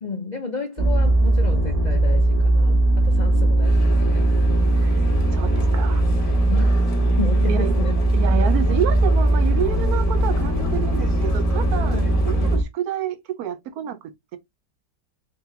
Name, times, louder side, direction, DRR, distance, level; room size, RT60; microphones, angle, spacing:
voice 1, 0.0-4.2 6.5-6.9 7.2-7.9 8.4-8.5 11.9-12.2, left 4 dB, 85° left, 0.4 m, -32 dB
sound 1, 0.8-12.6, right 1 dB, 30° right, 0.8 m, -19 dB
sound 2, 3.6-12.6, left 2 dB, 40° left, 0.9 m, -36 dB
voice 2, 4.7-6.0 7.5-7.7 8.1-14.4, right 9 dB, 70° right, 1.1 m, -29 dB
3.4 x 3.0 x 3.4 m
omnidirectional pair, 1.8 m